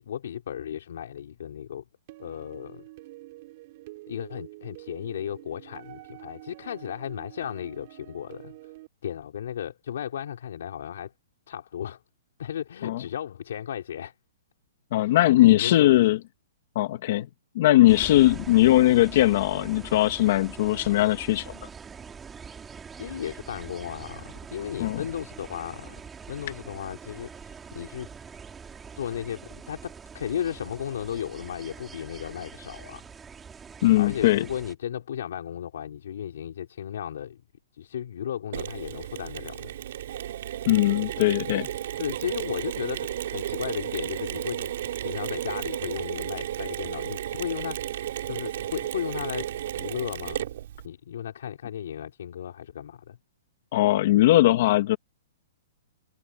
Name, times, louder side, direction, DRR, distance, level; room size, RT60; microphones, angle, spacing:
voice 1, 0.0-1.8 2.2-2.8 4.1-8.7 9.0-11.1 11.5-12.0 12.4-14.1 15.0-16.0 23.0-26.0 26.3-28.1 29.0-33.1 34.0-37.4 37.7-39.7 41.5-41.6 42.0-44.7 45.0-49.5 49.7-50.5 50.8-53.2, left 9 dB, 60° left, 3.8 m, -35 dB
sound 1, 2.1-8.9, right 19 dB, 35° right, 7.0 m, -47 dB
voice 2, 14.9-16.2 16.8-17.3 17.6-21.5 24.8-25.0 33.8-34.4 40.7-41.7 53.7-55.0, left 15 dB, 40° left, 2.1 m, -20 dB
sound 2, 17.9-34.7, right 6 dB, 10° right, 2.9 m, -44 dB
Mechanisms, 38.5-50.9, right 11 dB, 50° right, 4.0 m, -33 dB
hypercardioid pair, 175°, 0 cm